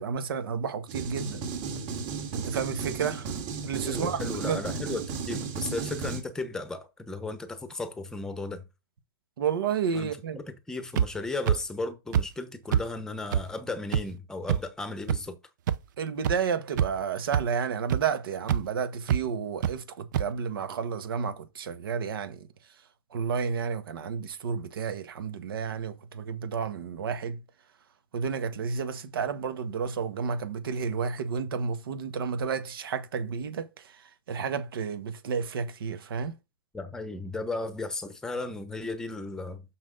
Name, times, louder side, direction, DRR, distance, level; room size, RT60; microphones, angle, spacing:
voice 1, 0.0-1.4 2.3-3.3 3.6-4.2 4.5-4.6 9.4-10.4 16.0-22.4 23.1-27.4 28.1-33.7 34.3-36.4, right 6 dB, 75° right, 1.5 m, -31 dB
sound 1, 0.9-6.2, right 5 dB, 35° right, 2.3 m, -34 dB
voice 2, 3.8-8.6 9.9-15.3 36.7-39.6, left 3 dB, 5° left, 0.9 m, -35 dB
sound 2, 11.0-11.1 11.5-11.6 12.1-12.2 12.7-12.8 13.3-13.4 13.9-14.0 14.5-14.6 15.1-15.2 15.7-15.8 16.2-16.3 16.7-17.0 17.3-17.4 17.9-18.0 18.5-18.6 19.1-19.2 19.6-19.7 20.1-20.2, right 9 dB, 55° right, 0.6 m, -24 dB
6.3 x 6.0 x 3.9 m
hypercardioid pair, 150°, 12 cm